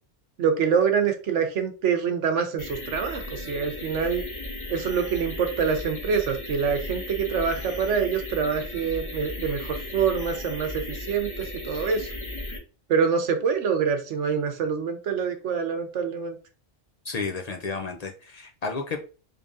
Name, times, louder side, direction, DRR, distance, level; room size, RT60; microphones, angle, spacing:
voice 1, 0.4-4.2 4.7-12.1 12.9-16.4, right 6 dB, 70° right, 6 dB, 1.0 m, -25 dB
sound 1, 2.6-12.6, left 1 dB, 25° left, 0.8 m, -36 dB
voice 2, 17.0-19.0, left 4 dB, 70° left, 4 dB, 0.3 m, -32 dB
3.5 x 3.3 x 2.5 m, 0.34 s
omnidirectional pair, 1.3 m